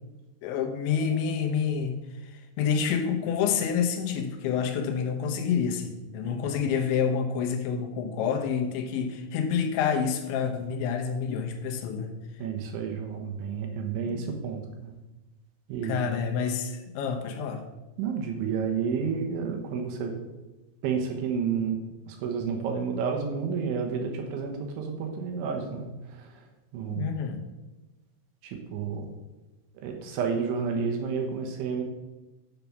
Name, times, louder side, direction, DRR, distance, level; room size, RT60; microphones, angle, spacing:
voice 1, 0.4-2.0 2.3-12.2 14.1-14.2 15.8-17.6 26.8-27.4, left 7 dB, 80° left, 5 dB, 3.2 m, -28 dB
voice 2, 12.4-14.9 15.7-16.0 18.0-20.2 20.8-21.8 22.1-26.4 26.7-27.1 28.4-29.1 29.8-31.8, right 6 dB, 85° right, 3 dB, 3.6 m, -30 dB
8.6 x 6.9 x 6.0 m, 1.1 s
omnidirectional pair, 5.3 m